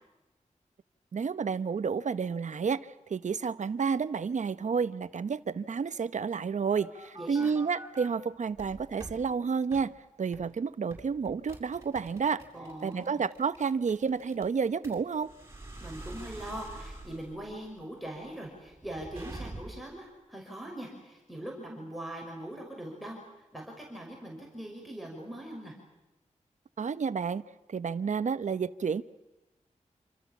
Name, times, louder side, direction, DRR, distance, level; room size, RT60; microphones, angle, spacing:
voice 1, 1.1-9.9 10.2-12.5 12.8-15.3 26.8-27.4 27.7-29.0, right 5 dB, 70° right, 14 dB, 1.0 m, -30 dB
sound 1, 6.3-8.1 8.5-9.2 9.7-9.9 10.3-10.5 10.9-20.0, right 2 dB, 20° right, 7.0 m, -46 dB
voice 2, 7.2-7.5 12.5-13.2 15.8-25.7, right 1 dB, ahead, 0 dB, 5.8 m, -41 dB
28.0 x 26.5 x 7.4 m, 1.0 s
wide cardioid pair, 125°, 13 cm